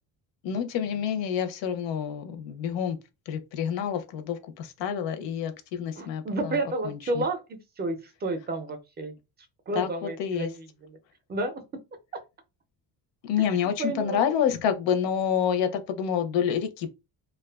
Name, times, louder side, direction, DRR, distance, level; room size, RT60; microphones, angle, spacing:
voice 1, 0.4-3.0 3.3-6.6 6.8-7.2 9.7-10.5 13.2-16.9, left 8 dB, 80° left, 0.6 m, -28 dB
voice 2, 6.0-9.1 9.7-10.6 11.3-11.6 12.1-12.2 13.8-14.2, right 2 dB, 25° right, 0.4 m, -31 dB
2.4 x 2.2 x 2.2 m
cardioid pair, 140°, 43 cm